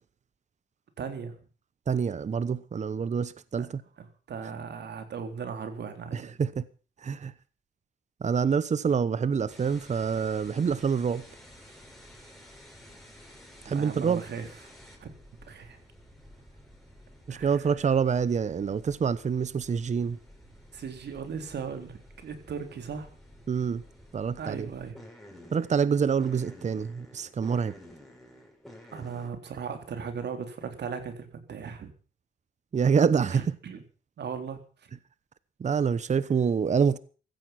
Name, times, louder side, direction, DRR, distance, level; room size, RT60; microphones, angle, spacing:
voice 1, 1.0-1.4 3.6-3.7 4.0-6.3 13.7-14.5 15.0-15.1 15.5-15.8 17.3-17.6 20.7-23.1 24.4-25.0 28.9-31.9 33.3-33.8 34.2-34.9, right 6 dB, 60° right, 3.9 m, -37 dB
voice 2, 1.9-3.8 6.1-6.6 7.0-7.3 8.2-11.2 13.6-14.2 17.3-20.2 23.5-23.8 24.1-24.7 25.5-27.7 32.7-33.4 35.6-37.0, right 6 dB, 35° right, 1.0 m, -26 dB
sound 1, 9.5-29.3, equal, ahead, 6.8 m, -52 dB
16.0 x 14.5 x 6.0 m
cardioid pair, 90°, 20 cm